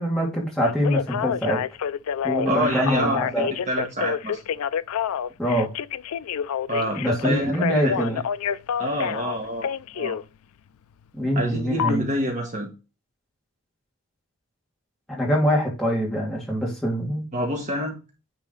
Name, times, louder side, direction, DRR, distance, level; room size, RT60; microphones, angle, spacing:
voice 1, 0.0-1.6 2.2-3.5 5.4-5.7 7.0-8.2 11.1-12.0 15.1-17.3, equal, ahead, -4 dB, 2.3 m, -24 dB
Telephone, 0.6-10.2 11.8-11.9, left 8 dB, 85° left, 0.4 m, -28 dB
voice 2, 2.4-4.4 6.7-7.9 8.8-9.7 9.9-10.2 11.3-12.7 17.3-18.0, equal, 35° right, 0 dB, 1.6 m, -27 dB
9.4 x 4.0 x 3.9 m, 0.29 s
head